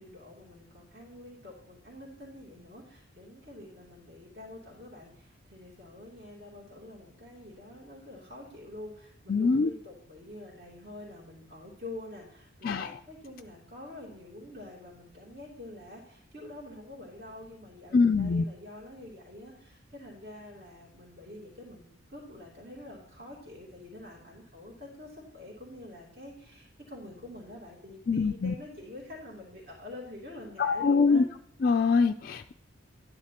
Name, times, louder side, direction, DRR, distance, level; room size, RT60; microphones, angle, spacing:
voice 1, 0.0-31.3, left 1 dB, 45° right, -4 dB, 2.9 m, -46 dB
voice 2, 9.3-9.7 12.6-12.9 17.9-18.4 28.1-28.5 30.6-31.2 31.6-32.5, left 4 dB, 45° left, 5 dB, 0.3 m, -24 dB
12.5 x 10.5 x 2.9 m, 0.68 s
head